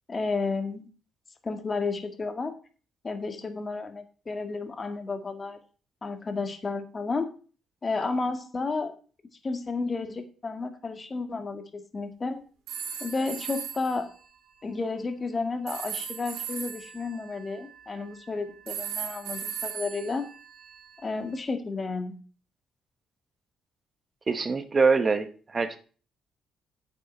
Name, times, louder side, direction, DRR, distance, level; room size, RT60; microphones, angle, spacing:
voice 1, 0.1-0.9 1.4-2.5 3.0-5.6 6.0-7.3 7.8-8.9 9.4-12.4 13.0-14.1 14.6-20.3 21.0-22.2, left 3 dB, 30° left, 7 dB, 1.9 m, -32 dB
sound 1, 12.7-14.0 15.7-18.1 18.7-21.0, right 8 dB, 90° right, 2.7 m, -37 dB
voice 2, 24.3-25.8, right 4 dB, 35° right, 10 dB, 1.4 m, -24 dB
9.3 x 8.6 x 4.5 m, 0.38 s
cardioid pair, 90°, 0 cm